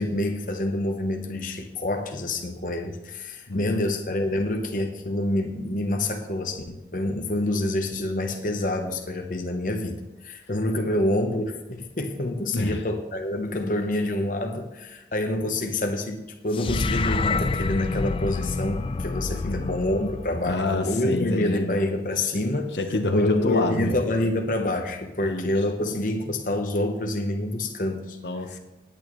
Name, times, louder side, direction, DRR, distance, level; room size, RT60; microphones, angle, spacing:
voice 1, 0.0-22.7 23.1-28.2, left 1 dB, 50° left, 4 dB, 0.9 m, -27 dB
voice 2, 3.5-3.9 10.9-11.0 12.5-12.8 19.4-19.8 20.5-21.8 22.7-24.0 25.2-25.5 28.2-28.6, left 2 dB, 80° left, 6 dB, 1.0 m, -28 dB
sound 1, 16.5-20.9, left 3 dB, 30° left, 0.3 m, -28 dB
17.5 x 8.9 x 3.1 m, 1.0 s
head